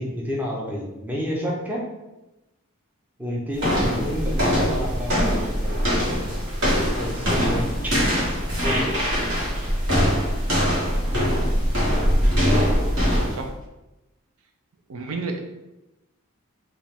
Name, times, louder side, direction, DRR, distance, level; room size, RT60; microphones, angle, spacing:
voice 1, 0.0-1.9 3.2-5.9 7.0-7.7 8.6-9.0, equal, 10° right, -3 dB, 0.7 m, -30 dB
sound 1, 3.5-13.5, equal, 55° right, 1.5 m, -22 dB
voice 2, 14.9-15.4, right 3 dB, 75° right, 4 dB, 0.5 m, -31 dB
4.9 x 2.4 x 3.5 m, 0.98 s
head